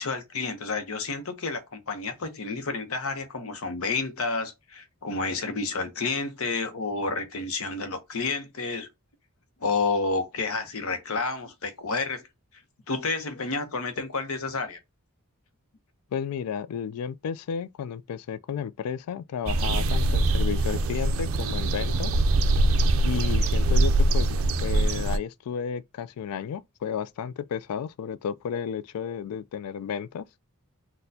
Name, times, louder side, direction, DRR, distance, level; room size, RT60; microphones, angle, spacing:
voice 1, 0.0-8.9 9.6-12.2 12.9-14.8, left 4 dB, 70° left, 0.7 m, -30 dB
voice 2, 16.1-22.2 23.0-30.3, left 7 dB, 90° left, 0.3 m, -33 dB
sound 1, 19.5-25.2, right 2 dB, 65° right, 0.4 m, -23 dB
4.1 x 2.2 x 2.6 m
head